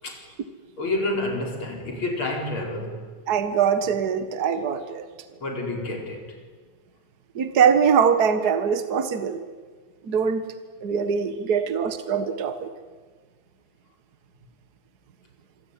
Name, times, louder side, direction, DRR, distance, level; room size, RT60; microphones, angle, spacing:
voice 1, 0.8-3.1 5.4-6.3, left 2 dB, 85° left, 1 dB, 5.3 m, -29 dB
voice 2, 3.3-5.1 7.4-9.4 10.0-10.4 10.8-12.7, right 7 dB, 50° right, 10 dB, 1.9 m, -22 dB
26.5 x 23.5 x 9.4 m, 1.5 s
omnidirectional pair, 2.2 m